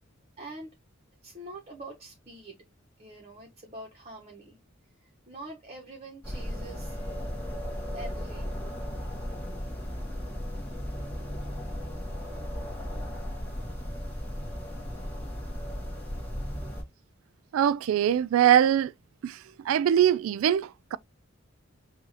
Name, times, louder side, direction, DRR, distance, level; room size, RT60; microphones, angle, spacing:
voice 1, 0.4-0.7 1.2-2.6 3.0-4.6 5.0-7.4 7.7-8.7, right 1 dB, 30° right, 1.2 m, -45 dB
sound 1, 6.2-16.8, equal, 10° left, 1.8 m, -35 dB
voice 2, 17.5-18.9 19.2-19.4 19.7-21.0, right 10 dB, 80° right, 0.3 m, -22 dB
6.1 x 2.7 x 3.2 m
head